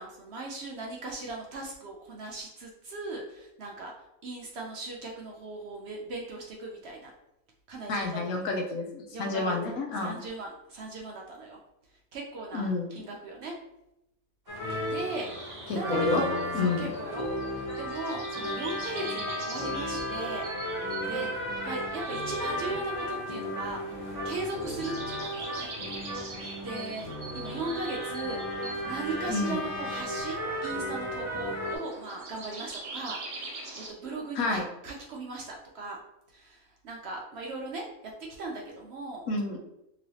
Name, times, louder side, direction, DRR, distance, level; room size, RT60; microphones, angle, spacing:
voice 1, 0.0-3.9 4.2-7.1 7.7-8.4 9.1-9.6 10.0-11.6 12.1-13.5 14.8-15.3 15.7-16.3 16.6-20.7 21.1-21.3 21.6-24.0 24.2-25.7 26.6-28.4 28.9-33.2 33.4-36.0 36.3-37.9 38.4-39.3, right 3 dB, 65° right, 0 dB, 0.6 m, -38 dB
voice 2, 7.9-10.2 12.5-12.9 15.7-16.2 16.5-16.9 29.3-29.6 34.3-34.6 39.3-39.6, left 3 dB, 90° left, 2 dB, 1.1 m, -29 dB
sound 1, 14.5-31.8, equal, 40° left, 0.5 m, -34 dB
sound 2, 14.5-33.9, right 2 dB, 45° right, 1.0 m, -44 dB
3.0 x 2.9 x 2.7 m, 0.87 s
omnidirectional pair, 1.5 m